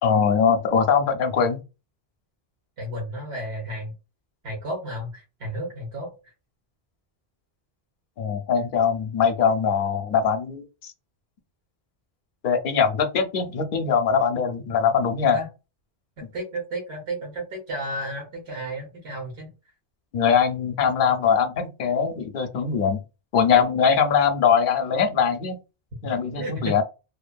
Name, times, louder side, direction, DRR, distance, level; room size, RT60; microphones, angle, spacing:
voice 1, 0.0-1.6 8.2-10.9 12.4-15.4 20.1-23.0 23.3-25.6 26.0-26.8, left 6 dB, 60° left, 5 dB, 0.7 m, -22 dB
voice 2, 2.8-3.9 4.4-6.3 15.3-15.5 16.2-19.5 26.4-26.8, right 1 dB, 90° right, -2 dB, 1.2 m, -33 dB
2.6 x 2.5 x 2.2 m, 0.29 s
omnidirectional pair, 1.1 m